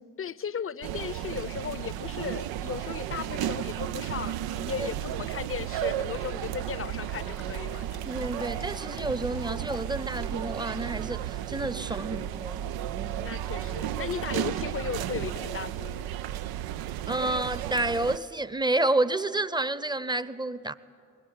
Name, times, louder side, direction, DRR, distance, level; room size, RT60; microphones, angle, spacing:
voice 1, 0.2-8.1 13.1-16.1, left 7 dB, 35° left, 0.7 m, -36 dB
sound 1, 0.8-18.2, right 11 dB, 80° right, 0.5 m, -33 dB
Fill (with liquid), 6.1-10.1, left 10 dB, 80° left, 0.9 m, -50 dB
voice 2, 8.0-12.7 17.1-20.7, right 2 dB, 10° right, 0.8 m, -29 dB
21.0 x 18.0 x 8.9 m
hypercardioid pair, 40°, 36 cm